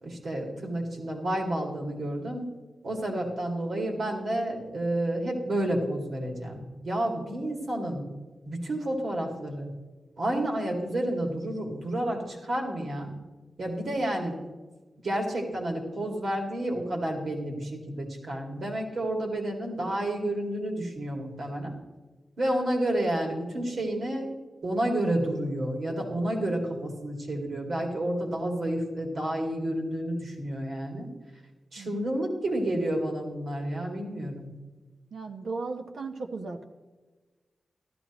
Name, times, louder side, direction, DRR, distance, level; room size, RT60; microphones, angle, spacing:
voice 1, 0.0-2.5 2.8-8.1 8.4-9.7 10.2-13.1 13.6-14.4 15.0-21.7 22.4-24.3 24.6-31.1 31.7-34.5, right 1 dB, 65° right, 0 dB, 2.3 m, -30 dB
voice 2, 31.8-32.1 35.1-36.6, right 3 dB, 85° right, 4 dB, 0.9 m, -36 dB
14.0 x 12.5 x 3.0 m, 1.3 s
wide cardioid pair, 135°, 0 cm